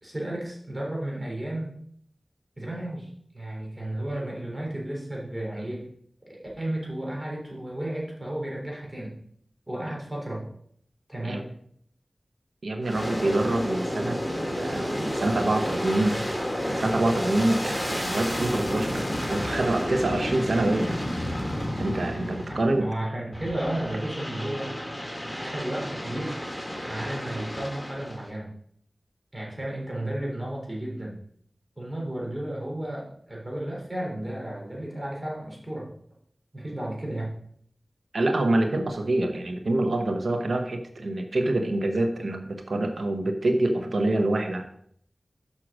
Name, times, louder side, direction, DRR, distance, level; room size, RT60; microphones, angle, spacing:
voice 1, 0.0-1.7 2.6-5.9 6.3-9.2 9.7-10.5 11.1-11.5 22.5-24.7 25.3-26.4 26.8-28.5 29.3-31.2 31.8-35.9 36.5-37.3, right 1 dB, 25° right, -3 dB, 3.8 m, -33 dB
voice 2, 12.6-16.2 16.6-21.0 21.8-22.9 38.1-44.7, right 2 dB, 85° right, 6 dB, 1.1 m, -26 dB
Aircraft, 12.8-22.9 23.3-28.3, equal, 5° left, 2.4 m, -31 dB
6.5 x 5.7 x 6.2 m, 0.65 s
cardioid pair, 40°, 0 cm